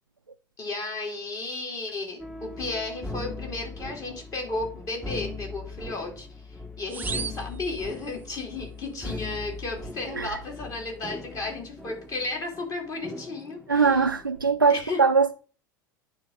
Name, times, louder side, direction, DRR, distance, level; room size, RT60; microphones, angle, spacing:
voice 1, 0.6-14.1 14.7-15.0, left 3 dB, 30° left, 3.3 m, -34 dB
sound 1, 2.2-14.4, left 3 dB, 5° left, 0.9 m, -40 dB
sound 2, 6.9-8.4, right 7 dB, 15° right, 0.4 m, -37 dB
voice 2, 13.7-15.3, right 5 dB, 90° right, 0.4 m, -21 dB
9.2 x 3.8 x 6.6 m
figure-of-eight pair, 75°, 11 cm